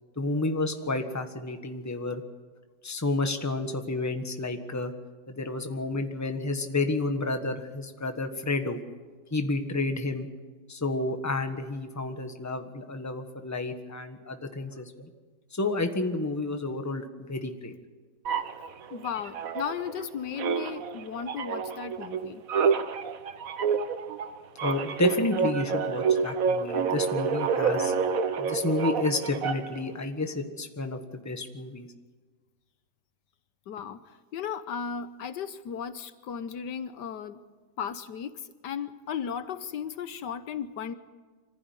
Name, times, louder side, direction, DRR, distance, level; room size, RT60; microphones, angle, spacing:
voice 1, 0.2-2.2 2.8-4.9 5.3-8.8 9.3-10.3 10.7-15.1 15.5-17.7 24.6-27.9 28.4-31.9, left 2 dB, 10° left, 6 dB, 1.3 m, -30 dB
sound 1, 18.2-20.1 20.4-29.9, right 6 dB, 55° right, 1.3 m, -28 dB
voice 2, 18.9-22.4 33.7-34.0 34.3-37.4 37.8-40.9, left 7 dB, 75° left, 12 dB, 1.5 m, -35 dB
25.0 x 15.0 x 9.7 m, 1.4 s
omnidirectional pair, 1.9 m